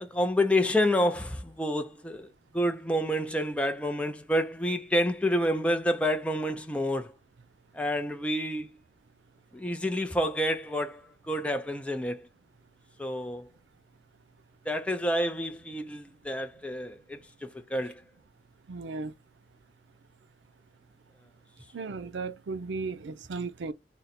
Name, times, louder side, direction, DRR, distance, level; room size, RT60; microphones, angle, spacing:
voice 1, 0.0-2.3 2.5-7.1 7.7-8.7 9.5-12.3 13.0-13.5 14.7-18.0, equal, 5° left, 0.4 m, -29 dB
voice 2, 18.7-19.1 21.7-23.7, right 4 dB, 85° right, 0.5 m, -35 dB
3.8 x 2.1 x 4.1 m
head